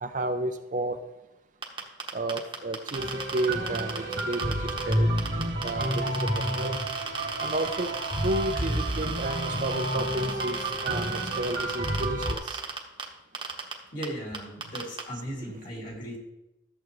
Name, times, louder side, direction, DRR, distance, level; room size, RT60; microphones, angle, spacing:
voice 1, 0.0-1.0 2.1-4.5 4.9-5.1 5.6-6.7 7.4-7.9 8.2-12.6 15.4-15.6, right 1 dB, 45° right, 7 dB, 0.6 m, -32 dB
sound 1, 1.6-4.9 5.2-13.0 13.3-13.7 14.0-14.1 14.3-15.0, right 5 dB, 25° right, 1.1 m, -35 dB
sound 2, 3.0-12.3, right 1 dB, 80° right, 2.1 m, -30 dB
voice 2, 13.9-16.2, equal, 45° left, -1 dB, 2.7 m, -37 dB
13.5 x 7.2 x 3.1 m, 0.92 s
head